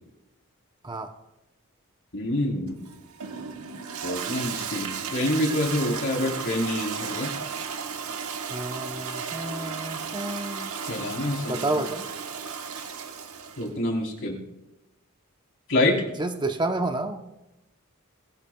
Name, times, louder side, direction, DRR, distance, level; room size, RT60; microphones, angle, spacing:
voice 1, 2.1-2.8 4.0-7.3 10.8-11.7 13.6-14.4 15.7-16.1, left 1 dB, 60° left, -1 dB, 3.7 m, -27 dB
Toilet flush, 2.7-13.7, right 6 dB, 75° right, 1.2 m, -34 dB
voice 2, 8.5-10.7 11.5-12.1 16.2-17.2, right 2 dB, 20° right, 5 dB, 0.8 m, -30 dB
21.5 x 18.0 x 2.3 m, 0.96 s
head